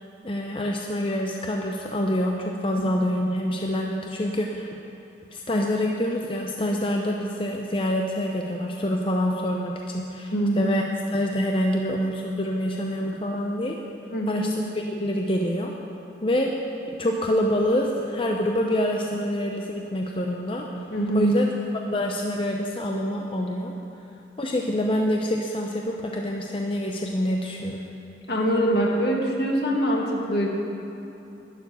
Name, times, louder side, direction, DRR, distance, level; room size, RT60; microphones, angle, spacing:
voice 1, 0.2-4.7 5.3-13.8 14.3-14.6 14.9-15.7 16.2-16.5 17.0-20.9 21.1-21.5 21.7-23.7 24.4-27.9, left 1 dB, 30° left, 1 dB, 0.6 m, -26 dB
voice 2, 10.3-10.7 14.1-14.5 20.9-21.4 28.3-30.5, right 1 dB, 65° left, -1 dB, 1.9 m, -23 dB
11.5 x 6.9 x 9.1 m, 3.0 s
head